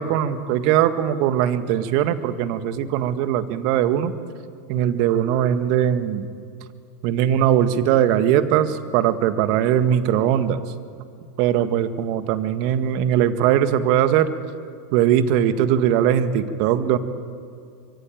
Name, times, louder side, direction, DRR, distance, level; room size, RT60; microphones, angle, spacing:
voice 1, 0.0-4.1 4.7-6.3 7.0-10.7 11.4-14.3 14.9-17.0, right 10 dB, 55° right, 10 dB, 1.8 m, -20 dB
25.0 x 22.5 x 8.9 m, 2.3 s
hypercardioid pair, 90°, 0 cm